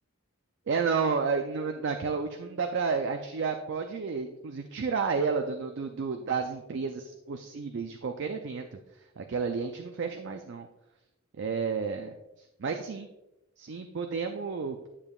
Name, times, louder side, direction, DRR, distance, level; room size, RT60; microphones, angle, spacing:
voice 1, 0.7-8.8 9.2-10.7 11.4-12.1 12.6-13.1 13.6-14.9, right 5 dB, 55° right, 5 dB, 0.5 m, -31 dB
9.7 x 7.0 x 2.4 m, 0.93 s
head